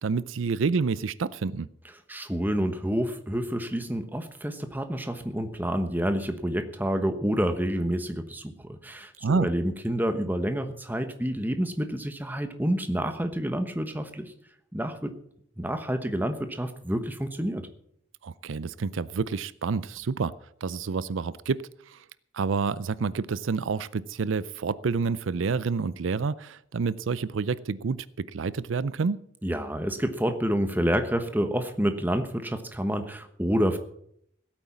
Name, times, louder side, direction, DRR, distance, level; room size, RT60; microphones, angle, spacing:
voice 1, 0.0-1.7 9.2-9.5 18.2-20.3 20.6-22.0 22.3-29.2, right 5 dB, 75° right, 18 dB, 0.5 m, -28 dB
voice 2, 2.1-14.3 14.7-15.1 15.6-17.7 29.4-33.8, equal, 10° right, 8 dB, 1.1 m, -28 dB
16.0 x 8.9 x 7.2 m, 0.71 s
head